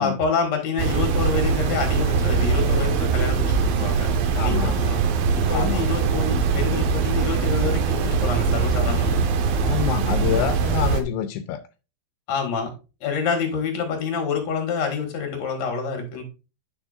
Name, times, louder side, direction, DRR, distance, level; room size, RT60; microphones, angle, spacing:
voice 1, 0.0-5.0 5.3-9.2 12.3-12.7 13.0-16.2, left 5 dB, 50° left, 2.8 m, -27 dB
sound 1, 0.8-11.0, right 5 dB, 75° right, 2.4 m, -22 dB
voice 2, 4.4-4.8 5.5-5.9 9.6-11.6, left 10 dB, 85° left, 2.5 m, -27 dB
9.5 x 6.3 x 2.5 m
omnidirectional pair, 4.4 m